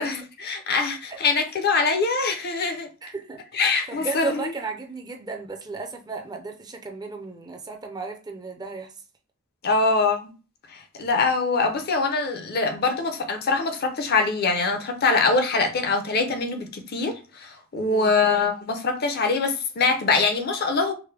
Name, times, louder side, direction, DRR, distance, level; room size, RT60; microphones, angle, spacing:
voice 1, 0.0-2.9 3.5-4.5 9.6-10.3 10.7-20.9, left 4 dB, 50° left, 0.6 m, -23 dB
voice 2, 3.0-8.9 17.9-18.1, right 4 dB, 20° right, 0.5 m, -35 dB
4.8 x 2.1 x 3.3 m
head